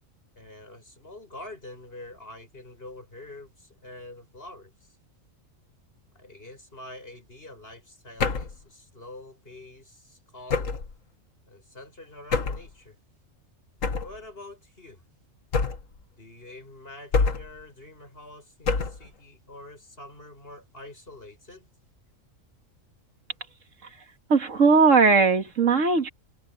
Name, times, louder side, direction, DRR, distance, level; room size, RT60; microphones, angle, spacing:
voice 1, 0.4-4.9 6.1-10.8 11.5-13.0 14.0-15.0 16.2-21.7, left 2 dB, 45° left, 6.9 m, -46 dB
sound 1, 8.2-8.6 10.5-10.9 12.3-12.7 13.8-14.2 15.5-16.0 17.1-17.6 18.7-19.1, left 4 dB, 90° left, 1.9 m, -26 dB
voice 2, 24.3-26.1, right 4 dB, 75° right, 2.2 m, -19 dB
omnidirectional pair, 1.3 m